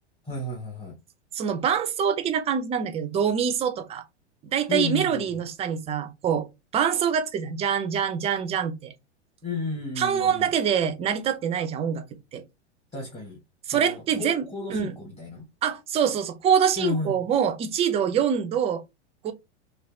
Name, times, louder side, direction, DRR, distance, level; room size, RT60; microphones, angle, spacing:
voice 1, 0.2-1.0 4.7-5.2 9.4-10.5 12.9-13.4 13.7-15.5 16.8-17.2, left 3 dB, 15° left, 1.1 m, -32 dB
voice 2, 1.3-4.0 4.5-6.5 6.7-8.9 10.0-12.0 12.3-12.4 13.7-14.9 15.6-18.8 19.2-19.3, right 8 dB, 20° right, 0.4 m, -25 dB
3.2 x 2.7 x 2.5 m
figure-of-eight pair, 95°, 35 cm